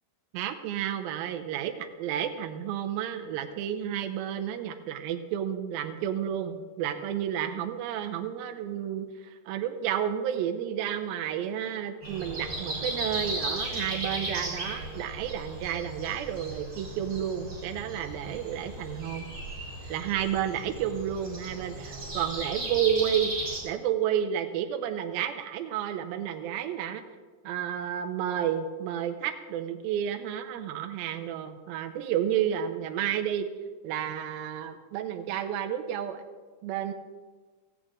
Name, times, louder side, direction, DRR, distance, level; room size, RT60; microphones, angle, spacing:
voice 1, 0.3-19.3 19.9-23.3 23.6-27.0 27.4-33.5 33.8-36.2 36.6-36.9, right 9 dB, 80° right, 6 dB, 2.5 m, -31 dB
Breathing, 12.0-23.6, right 1 dB, 30° right, 4.2 m, -36 dB
17.0 x 15.0 x 2.5 m, 1.4 s
omnidirectional pair, 4.6 m